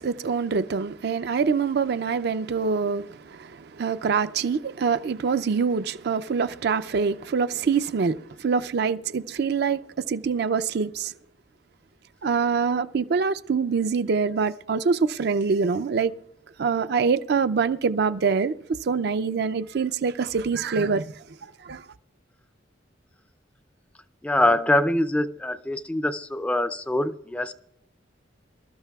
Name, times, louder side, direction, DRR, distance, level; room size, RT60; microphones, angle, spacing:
voice 1, 0.0-9.8 10.1-11.1 12.2-16.1 16.6-18.6 18.9-21.1 21.6-21.8, right 5 dB, 60° right, 0.4 m, -25 dB
voice 2, 24.2-27.5, left 1 dB, 5° left, 0.4 m, -24 dB
26.5 x 13.0 x 2.3 m
head